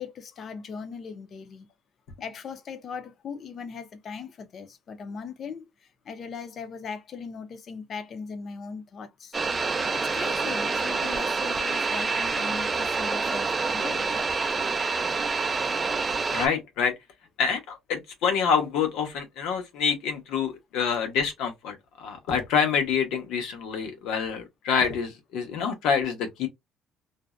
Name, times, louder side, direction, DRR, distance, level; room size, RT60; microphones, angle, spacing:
voice 1, 0.0-1.7 2.2-5.7 6.1-9.3 9.9-14.2, left 5 dB, 40° left, 0.5 m, -39 dB
sound 1, 9.3-16.5, right 4 dB, 20° right, 0.3 m, -27 dB
voice 2, 16.3-16.9 17.4-26.5, left 6 dB, 80° left, 0.9 m, -27 dB
2.6 x 2.1 x 2.3 m
cardioid pair, 155°, 0 cm